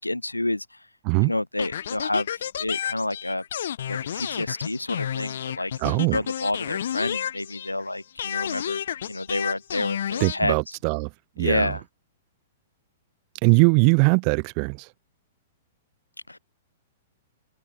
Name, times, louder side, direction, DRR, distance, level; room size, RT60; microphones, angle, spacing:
voice 1, 0.0-0.9 1.2-3.4 3.9-5.7 6.1-8.8 9.1-10.8 11.4-11.8 16.3-16.4, left 2 dB, 85° left, 0.9 m, -29 dB
sound 1, 1.6-7.8 8.2-10.4, left 9 dB, 55° left, 1.1 m, -31 dB
voice 2, 5.8-6.2 10.2-11.1 11.4-11.7 13.4-14.9, right 40 dB or more, 35° right, 2.8 m, -21 dB
figure-of-eight pair, 105°, 0 cm